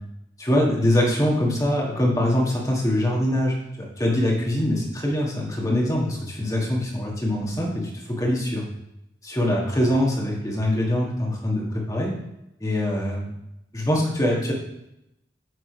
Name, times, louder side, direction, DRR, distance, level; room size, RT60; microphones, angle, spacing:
voice 1, 0.4-3.5 4.0-7.9 8.2-8.6 9.2-12.1 12.6-13.3 13.7-14.5, left 1 dB, 20° left, -2 dB, 1.5 m, -23 dB
7.8 x 3.7 x 4.9 m, 0.85 s
head